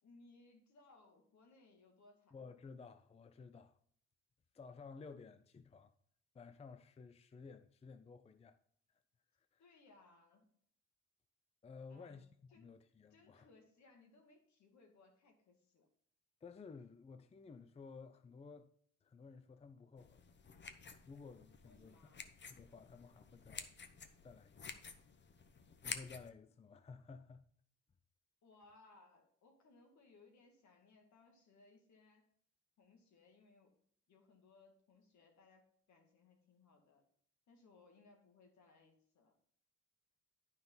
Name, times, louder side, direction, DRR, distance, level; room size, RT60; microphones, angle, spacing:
voice 1, 0.0-2.3 9.6-10.5 11.9-12.2 12.5-12.7 13.1-15.9 21.6-22.3 28.4-32.3 32.8-33.8 34.1-37.0 37.5-39.3, left 3 dB, 65° left, 2.2 m, -66 dB
voice 2, 2.3-3.8 4.5-5.9 6.3-8.6 9.5-9.6 11.6-12.3 12.5-13.5 16.4-18.7 19.0-20.2 21.1-22.0 22.5-23.7 24.2-24.9 25.8-27.4, left 4 dB, 20° left, 0.5 m, -55 dB
sound 1, 20.0-26.3, left 5 dB, 35° left, 0.9 m, -51 dB
9.5 x 5.4 x 3.9 m
cardioid pair, 90°, 30 cm